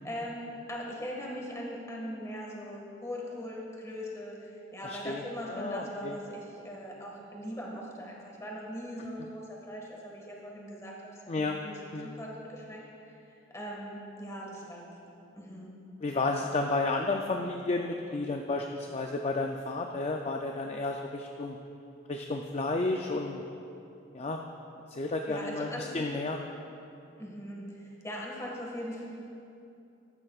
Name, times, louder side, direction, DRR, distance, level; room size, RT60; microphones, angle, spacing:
voice 1, 0.0-13.1 13.5-14.8 15.3-15.7 25.3-25.9 27.2-29.0, equal, 15° left, -3 dB, 1.8 m, -40 dB
voice 2, 4.8-6.1 11.3-11.6 11.9-12.1 16.0-21.6 22.1-23.4 24.1-24.4 24.9-26.4, left 3 dB, 35° left, 2 dB, 0.4 m, -32 dB
14.5 x 12.0 x 2.4 m, 2.7 s
head